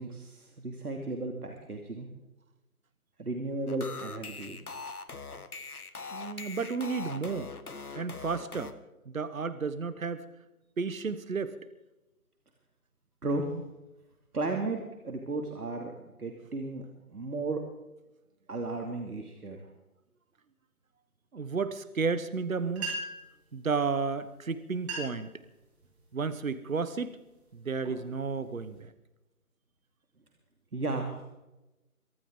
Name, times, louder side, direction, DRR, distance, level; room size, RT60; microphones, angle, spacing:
voice 1, 0.0-2.1 3.2-4.6 13.2-13.6 14.3-14.8 15.0-16.9 17.1-17.6 18.5-19.6 30.7-31.2, right 2 dB, 80° right, 3 dB, 2.8 m, -34 dB
sound 1, 3.7-8.7, left 4 dB, 75° left, 1.7 m, -42 dB
voice 2, 6.1-7.5 7.9-8.7 9.0-10.2 10.8-11.6 21.3-23.0 23.5-25.3 26.1-27.2 27.5-28.9, right 5 dB, 65° right, 13 dB, 1.3 m, -32 dB
sound 2, 22.5-22.6 22.7-23.3 24.2-24.4 24.7-25.3 25.8-26.2 26.8-27.0 27.6-28.8, right 2 dB, 45° right, 6.3 m, -39 dB
24.0 x 12.5 x 3.9 m, 0.98 s
figure-of-eight pair, 170°, 45 cm